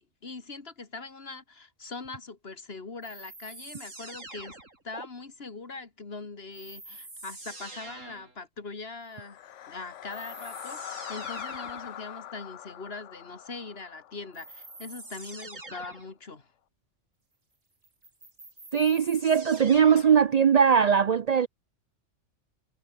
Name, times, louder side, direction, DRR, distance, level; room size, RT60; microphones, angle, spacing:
voice 1, 0.0-4.6 4.8-9.4 9.7-16.5, left 4 dB, 50° left, 2.4 m, -41 dB
sound 1, 3.0-5.1 6.5-8.4 9.6-9.7 10.1-12.0 14.3-16.1 17.8-20.3, right 2 dB, 85° right, 5.3 m, -45 dB
sound 2, 9.1-15.3, left 11 dB, 75° left, 1.1 m, -43 dB
voice 2, 18.7-21.5, right 7 dB, 55° right, 0.4 m, -20 dB
omnidirectional pair, 1.3 m